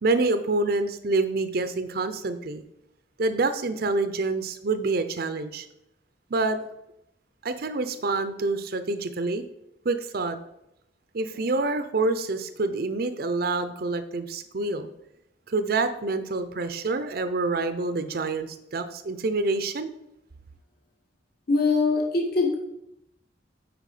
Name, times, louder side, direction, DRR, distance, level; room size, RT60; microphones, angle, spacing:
voice 1, 0.0-2.6 3.2-5.7 6.3-6.6 7.4-9.4 9.8-10.4 11.1-14.9 15.5-19.9, right 3 dB, 55° right, 10 dB, 0.6 m, -27 dB
voice 2, 21.5-22.6, left 3 dB, 55° left, 0 dB, 1.8 m, -22 dB
9.0 x 4.9 x 4.9 m, 0.82 s
head